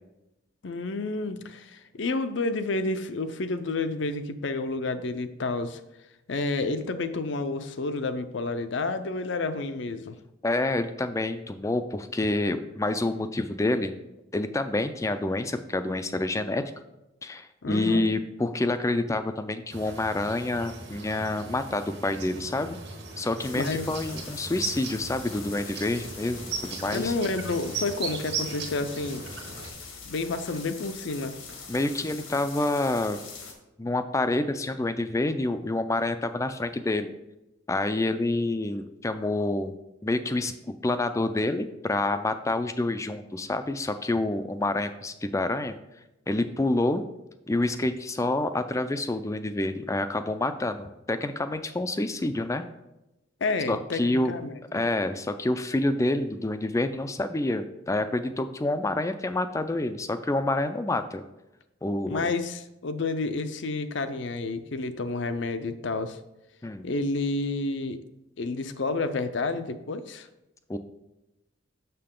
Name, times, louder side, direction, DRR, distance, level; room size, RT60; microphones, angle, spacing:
voice 1, 0.6-5.8 6.3-10.2 17.6-18.1 23.5-23.9 26.9-29.3 30.1-31.4 53.4-54.8 62.1-66.2 66.8-68.0 68.4-70.3, left 3 dB, 60° left, 10 dB, 0.5 m, -30 dB
voice 2, 10.4-13.9 14.3-16.6 17.2-22.8 23.2-27.1 31.7-33.2 33.8-37.1 37.7-39.7 40.0-40.5 40.8-45.8 46.3-47.0 47.5-52.6 53.7-54.3 54.7-61.2 61.8-62.3 66.6-66.9 70.7-70.8, left 2 dB, 15° left, 10 dB, 0.4 m, -28 dB
sound 1, 19.7-29.7, right 4 dB, 55° right, 1.3 m, -38 dB
sound 2, 23.4-33.5, left 5 dB, 85° left, 1.6 m, -43 dB
6.7 x 6.3 x 3.7 m, 0.94 s
head